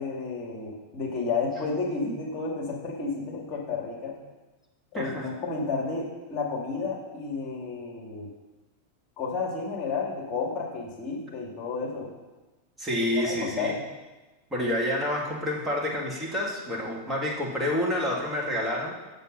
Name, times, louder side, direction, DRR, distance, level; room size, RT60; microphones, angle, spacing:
voice 1, 0.0-4.2 4.9-8.3 9.2-12.1 13.2-13.8, left 4 dB, 35° left, -1 dB, 2.3 m, -31 dB
voice 2, 4.9-5.3 12.8-13.7 14.5-19.0, left 1 dB, 10° right, -3 dB, 2.2 m, -28 dB
6.9 x 6.7 x 5.5 m, 1.1 s
figure-of-eight pair, 90°, 0 cm